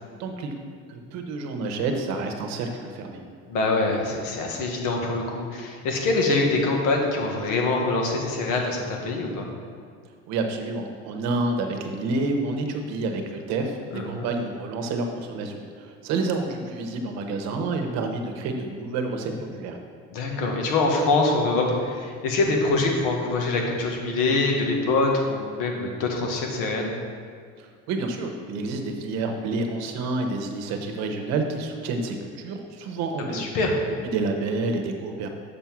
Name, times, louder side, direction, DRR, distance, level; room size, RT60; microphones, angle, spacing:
voice 1, 0.2-0.5 0.9-3.2 10.3-19.8 27.6-33.4 34.1-35.3, right 3 dB, 60° right, 4 dB, 1.0 m, -29 dB
voice 2, 3.5-9.5 13.9-14.2 20.1-26.9 33.2-33.8, left 3 dB, 85° left, 1 dB, 1.6 m, -24 dB
6.8 x 5.4 x 6.0 m, 2.2 s
cardioid pair, 165°, 30 cm